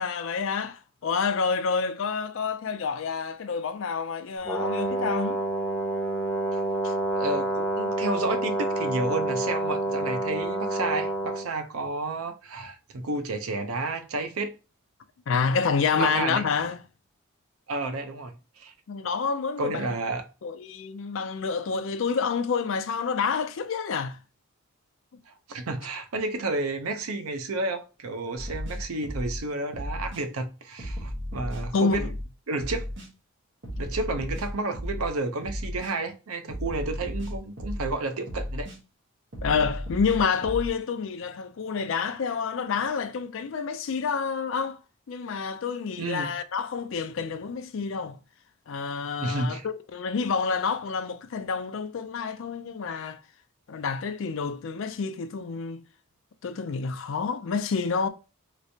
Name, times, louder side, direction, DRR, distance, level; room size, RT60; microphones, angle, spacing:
voice 1, 0.0-5.4 6.8-6.9 15.3-16.8 18.9-19.9 20.4-24.2 25.1-25.2 31.7-32.1 39.4-44.8 45.1-48.2 48.7-53.2 53.7-55.8 56.4-58.1, left 5 dB, 65° left, 0.4 m, -28 dB
Brass instrument, 4.4-11.5, right 2 dB, 10° left, 0.6 m, -28 dB
voice 2, 7.1-14.5 15.9-16.4 17.7-18.7 19.6-20.3 25.5-32.0 32.5-32.9 33.8-38.7 46.0-46.3 49.2-49.7, right 2 dB, 90° right, 0.6 m, -31 dB
sound 1, 28.4-29.4 29.7-30.2 30.8-32.3 32.6-33.1 33.6-35.1 35.4-35.9 36.5-37.9 38.3-38.8 39.3-40.7, equal, 55° right, 1.1 m, -34 dB
3.2 x 3.0 x 2.7 m
head